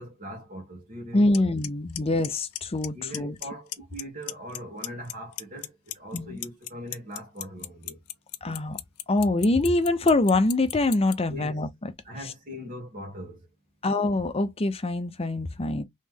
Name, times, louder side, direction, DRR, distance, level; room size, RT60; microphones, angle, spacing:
voice 1, 0.0-1.5 2.9-8.0 11.3-11.6 12.0-13.5, equal, 40° right, 1.3 m, -40 dB
voice 2, 1.1-3.3 6.1-6.4 8.4-8.8 9.1-11.7 13.8-15.8, left 2 dB, 25° left, 0.6 m, -24 dB
Clock, 1.3-1.4 1.6-2.0 2.2-2.9 3.1-3.4 3.7-4.6 4.8-11.1, left 15 dB, 85° left, 0.5 m, -33 dB
3.1 x 3.1 x 3.6 m
head